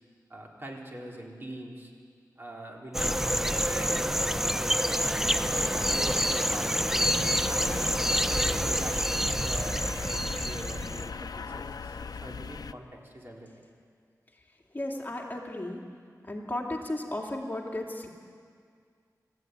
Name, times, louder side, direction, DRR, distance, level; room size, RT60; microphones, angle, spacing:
voice 1, 0.3-1.9 2.4-5.2 5.5-7.7 8.3-13.6, right 1 dB, 35° right, -1 dB, 3.9 m, -44 dB
sound 1, 2.9-11.1, equal, 5° right, 0.7 m, -27 dB
sound 2, 3.0-12.7, left 5 dB, 75° left, 0.6 m, -39 dB
voice 2, 14.7-15.8 16.2-18.1, left 1 dB, 30° left, -1 dB, 2.5 m, -34 dB
29.0 x 14.5 x 9.4 m, 2.1 s
wide cardioid pair, 95°, 7 cm